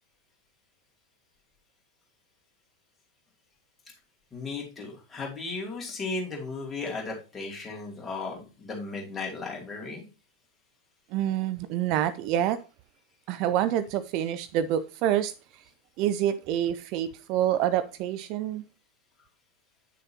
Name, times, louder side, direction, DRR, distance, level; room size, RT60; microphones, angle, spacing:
voice 1, 4.3-10.1, left 3 dB, 15° left, 2.6 m, -35 dB
voice 2, 11.1-12.6 13.3-15.3 16.0-18.6, right 11 dB, 40° right, 0.4 m, -27 dB
8.5 x 6.5 x 2.8 m
figure-of-eight pair, 90°, 0 cm